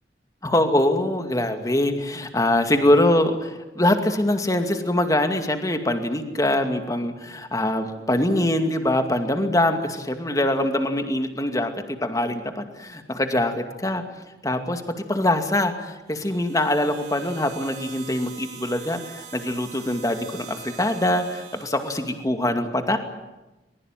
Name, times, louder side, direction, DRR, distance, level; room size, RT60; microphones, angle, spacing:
voice 1, 0.4-14.0 14.4-14.8 15.1-23.0, left 1 dB, 20° left, 7 dB, 2.3 m, -23 dB
sound 1, 16.1-22.2, right 8 dB, 50° right, 4.5 m, -43 dB
23.0 x 21.5 x 9.2 m, 1.0 s
head